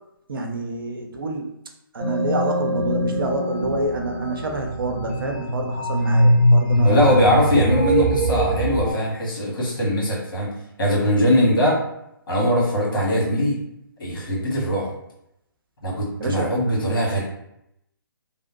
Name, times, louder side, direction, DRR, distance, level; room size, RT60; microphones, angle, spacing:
voice 1, 0.3-1.5 1.9-7.2 16.2-16.8, right 2 dB, 70° right, 2 dB, 0.6 m, -27 dB
sound 1, 2.0-8.9, equal, 30° right, 0.9 m, -22 dB
voice 2, 6.8-10.5 10.8-11.8 12.3-13.6 14.0-14.9 15.8-17.2, equal, 65° left, -4 dB, 1.3 m, -21 dB
2.6 x 2.0 x 2.8 m, 0.80 s
figure-of-eight pair, 140°, 12 cm